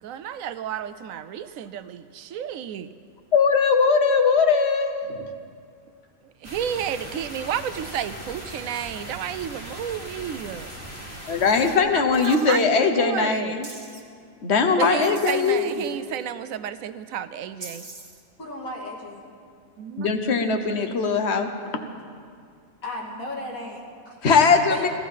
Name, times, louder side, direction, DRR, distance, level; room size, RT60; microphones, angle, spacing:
voice 1, 0.0-2.9 6.4-10.7 11.9-13.6 14.8-17.9 19.8-20.1, right 9 dB, 75° right, 12 dB, 1.0 m, -31 dB
voice 2, 3.3-5.2 11.3-13.7 14.4-15.7 20.0-21.5 24.2-24.9, left 5 dB, 50° left, 6 dB, 1.3 m, -20 dB
sound 1, 6.4-11.8, right 1 dB, 10° left, 2.7 m, -39 dB
sound 2, 12.1-12.6 13.6-14.0 15.0-16.2 17.6-18.2, right 3 dB, 20° right, 1.6 m, -43 dB
voice 3, 18.4-19.2 22.8-24.9, left 1 dB, 75° left, -3 dB, 2.9 m, -35 dB
17.0 x 13.5 x 5.5 m, 2.2 s
omnidirectional pair, 1.5 m